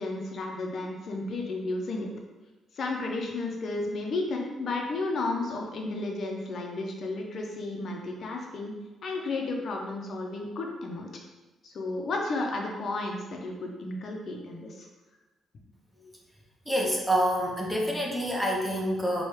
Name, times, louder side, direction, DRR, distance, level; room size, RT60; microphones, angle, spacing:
voice 1, 0.0-2.1 2.7-8.7 9.0-11.1 11.6-14.9, left 2 dB, 55° left, 1 dB, 0.5 m, -33 dB
voice 2, 16.7-19.2, equal, 5° right, -2 dB, 0.7 m, -27 dB
4.4 x 2.3 x 3.1 m, 1.2 s
cardioid pair, 90°, 0 cm